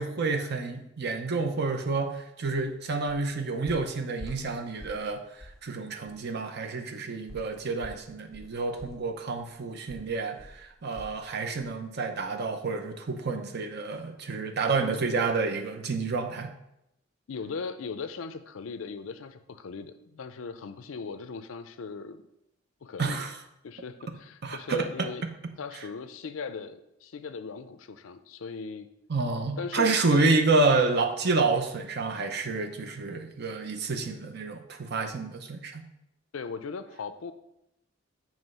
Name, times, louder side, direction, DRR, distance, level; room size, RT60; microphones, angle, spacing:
voice 1, 0.0-16.5 23.0-23.4 24.4-25.1 29.1-35.8, right 3 dB, 55° right, 6 dB, 0.7 m, -29 dB
sound 1, 2.5-2.7 3.1-3.3 3.7-5.1 5.4-5.7 6.1-6.2 7.3-11.3 11.6-11.8 12.2-12.3, equal, ahead, 0.7 m, -47 dB
voice 2, 17.3-22.2 22.8-23.2 23.6-25.2 25.6-28.9 29.6-30.3 36.3-37.3, left 5 dB, 85° left, 11 dB, 0.5 m, -38 dB
7.2 x 3.2 x 5.4 m, 0.83 s
head